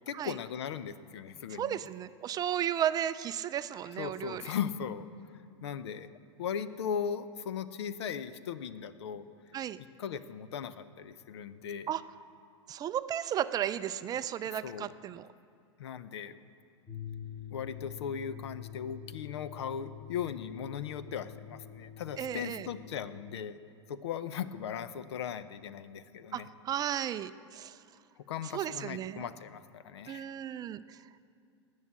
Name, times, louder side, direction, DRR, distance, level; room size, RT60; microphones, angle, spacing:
voice 1, 0.1-1.8 3.9-5.1 5.6-6.1 6.4-9.3 9.8-11.9 14.6-14.9 15.8-16.3 17.5-23.6 23.9-26.5 28.3-30.3, left 8 dB, 65° left, 14 dB, 0.7 m, -38 dB
voice 2, 1.6-4.4 9.5-9.8 11.9-12.0 12.7-15.3 22.2-22.7 26.3-27.8 28.5-29.2 30.1-31.0, right 10 dB, 25° right, 13 dB, 0.4 m, -34 dB
sound 1, 16.9-23.1, left 10 dB, 10° left, 1.6 m, -46 dB
19.0 x 6.4 x 8.4 m, 2.3 s
figure-of-eight pair, 95°, 15 cm